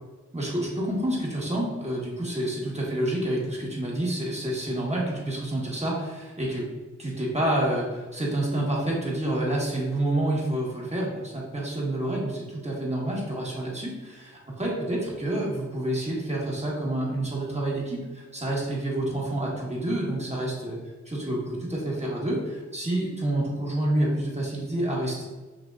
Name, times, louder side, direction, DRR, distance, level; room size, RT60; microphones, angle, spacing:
voice 1, 0.3-6.7 7.0-20.8 21.0-25.2, right 1 dB, 20° right, -4 dB, 1.5 m, -28 dB
5.9 x 2.7 x 2.5 m, 1.3 s
cardioid pair, 45°, 31 cm